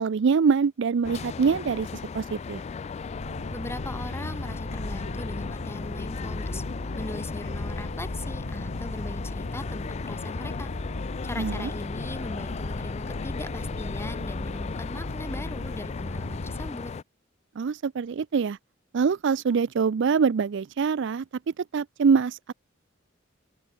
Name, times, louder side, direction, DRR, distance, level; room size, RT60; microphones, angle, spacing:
voice 1, 0.0-1.9 2.1-2.6 11.4-11.7 17.6-18.6 18.9-22.5, right 5 dB, 60° right, 0.4 m, -24 dB
sound 1, 1.0-17.0, left 5 dB, 35° left, 0.3 m, -37 dB
sound 2, 3.0-16.7, left 1 dB, 85° left, 2.3 m, -36 dB
voice 2, 3.5-6.6 7.0-10.7 11.2-16.9, left 1 dB, 15° left, 1.0 m, -39 dB
open air
head